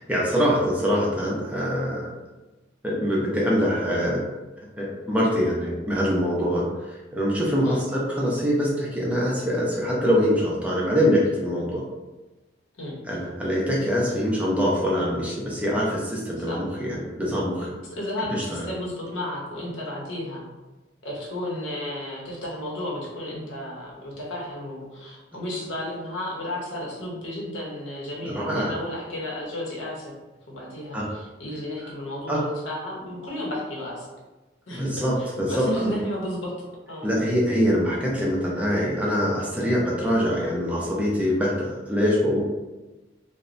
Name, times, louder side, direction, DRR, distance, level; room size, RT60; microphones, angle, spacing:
voice 1, 0.0-2.1 2.8-4.2 4.8-11.8 13.1-17.7 18.3-18.6 28.2-28.7 30.9-31.1 32.3-32.4 34.7-35.9 37.0-42.4, equal, 10° right, -4 dB, 0.4 m, -24 dB
voice 2, 17.9-20.4 21.0-30.1 30.5-34.1 34.7-37.1, left 1 dB, 90° left, -4 dB, 0.8 m, -33 dB
3.0 x 2.1 x 2.5 m, 1.1 s
head